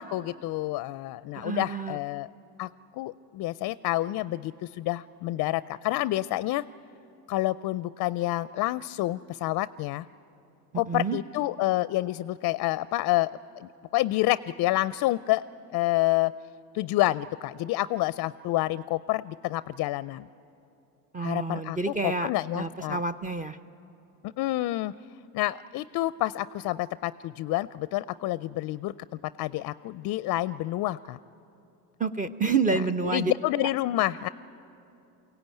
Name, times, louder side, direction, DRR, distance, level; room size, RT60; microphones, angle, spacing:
voice 1, 0.0-2.3 2.6-2.7 3.0-6.6 7.3-10.1 10.7-15.4 15.7-16.3 16.7-20.3 21.2-21.8 22.0-23.0 24.2-24.9 25.3-28.9 29.4-31.2 33.1-34.3, left 16 dB, 55° left, 17 dB, 0.4 m, -28 dB
voice 2, 1.3-2.0 10.7-11.2 21.1-23.6 32.0-33.7, right 4 dB, 20° right, 10 dB, 0.6 m, -29 dB
23.0 x 17.0 x 9.1 m, 2.8 s
supercardioid pair, 95°, 43 cm